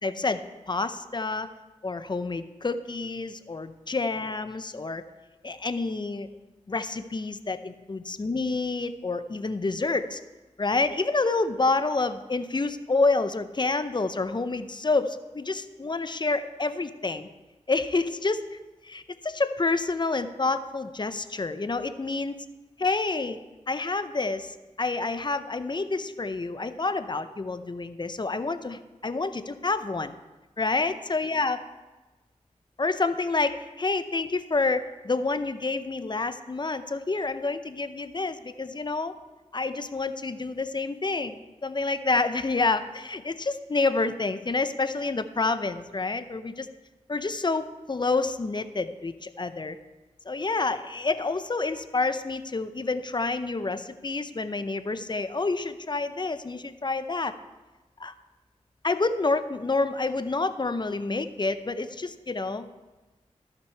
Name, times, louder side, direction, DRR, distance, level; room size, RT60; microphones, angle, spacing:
voice 1, 0.0-1.5 1.8-5.0 5.4-6.3 6.7-10.2 10.6-17.3 17.7-18.6 18.8-22.3 22.8-23.4 23.7-30.1 30.6-31.6 32.8-39.2 39.5-46.7 47.1-49.8 50.3-57.3 58.0-58.1 58.8-62.7, left 3 dB, 35° left, 11 dB, 0.6 m, -28 dB
14.0 x 5.9 x 4.5 m, 1.2 s
cardioid pair, 55°, 13 cm